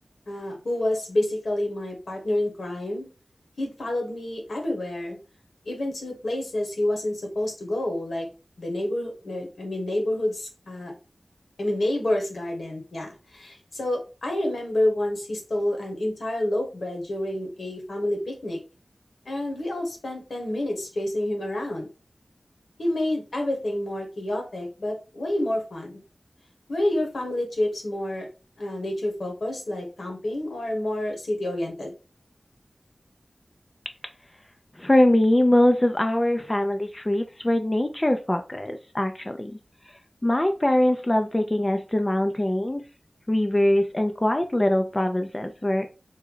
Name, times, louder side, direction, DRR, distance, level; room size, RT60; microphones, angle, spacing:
voice 1, 0.3-3.1 3.6-5.2 5.7-8.3 8.6-10.9 11.6-18.6 19.2-21.9 22.8-26.0 26.7-28.3 28.6-31.9, left 1 dB, 80° left, 2 dB, 1.1 m, -28 dB
voice 2, 34.8-39.5 40.2-42.8 43.3-46.0, left 1 dB, 25° left, 6 dB, 0.4 m, -22 dB
3.3 x 2.1 x 3.6 m, 0.32 s
wide cardioid pair, 55°, 0 cm